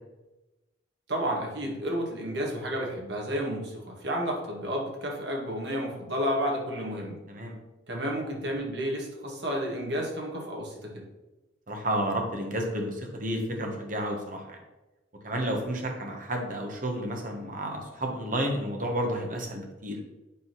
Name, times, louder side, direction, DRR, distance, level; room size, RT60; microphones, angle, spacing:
voice 1, 1.1-7.2 7.9-11.1, equal, 65° right, -1 dB, 2.1 m, -31 dB
voice 2, 11.7-14.6 15.2-20.0, right 1 dB, 45° right, 2 dB, 1.6 m, -31 dB
8.6 x 4.0 x 6.2 m, 1.0 s
head